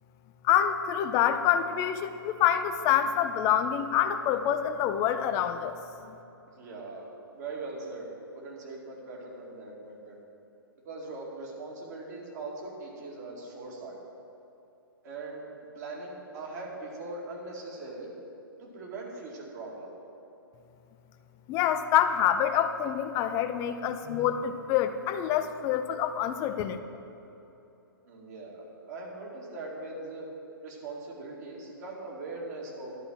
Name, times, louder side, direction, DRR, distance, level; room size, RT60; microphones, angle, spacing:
voice 1, 0.4-5.7 6.1-6.2 21.5-26.8, left 10 dB, 25° left, 9 dB, 0.5 m, -26 dB
voice 2, 6.5-7.1 7.3-8.1 8.3-10.2 10.9-14.0 15.0-15.4 15.7-18.1 18.6-19.9 28.1-30.3 30.6-32.9, right 3 dB, 45° right, -3 dB, 2.2 m, -41 dB
11.0 x 4.5 x 7.6 m, 2.9 s
figure-of-eight pair, 120°, 12 cm